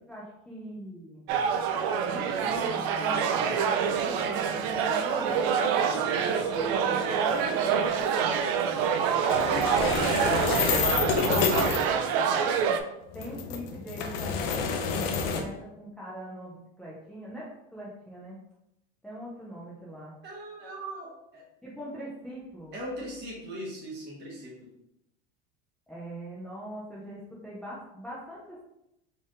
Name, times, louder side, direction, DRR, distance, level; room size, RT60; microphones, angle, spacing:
voice 1, 0.1-1.3 2.0-6.1 6.8-8.0 13.1-18.4 19.0-20.1 21.6-22.8 25.9-28.6, equal, 5° left, -8 dB, 0.4 m, -42 dB
sound 1, 1.3-12.8, right 7 dB, 60° right, 0.4 m, -26 dB
voice 2, 5.9-7.7 9.3-11.4 20.2-21.4 22.7-24.7, right 1 dB, 35° right, -3 dB, 1.3 m, -40 dB
sound 2, 9.3-11.9 13.1-15.4, left 6 dB, 75° left, 0.7 m, -28 dB
4.2 x 3.4 x 2.5 m, 0.86 s
supercardioid pair, 150°, 31 cm